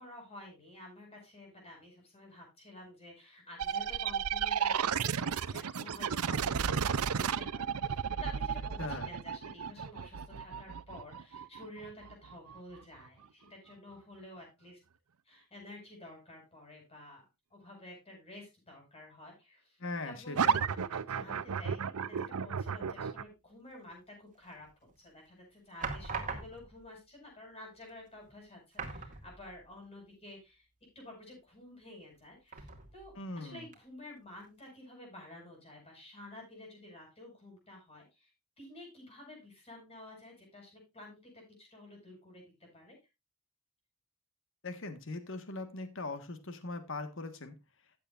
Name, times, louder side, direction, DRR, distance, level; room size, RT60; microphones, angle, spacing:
voice 1, 0.0-14.8 15.2-24.7 25.0-30.7 30.9-43.0, left 1 dB, 25° left, 0 dB, 7.8 m, -51 dB
sound 1, 3.6-13.0 20.3-23.2, right 7 dB, 85° right, 0.6 m, -33 dB
voice 2, 8.8-9.1 19.8-20.6 33.2-33.6 44.6-47.5, left 2 dB, 60° left, 9 dB, 1.5 m, -40 dB
sound 2, 24.5-25.0 25.8-26.9 27.8-27.9 28.2-28.3 28.7-29.7 30.0-30.1 32.5-33.2 33.7-33.8, right 4 dB, 35° right, 2.2 m, -41 dB
15.0 x 8.8 x 2.5 m, 0.24 s
head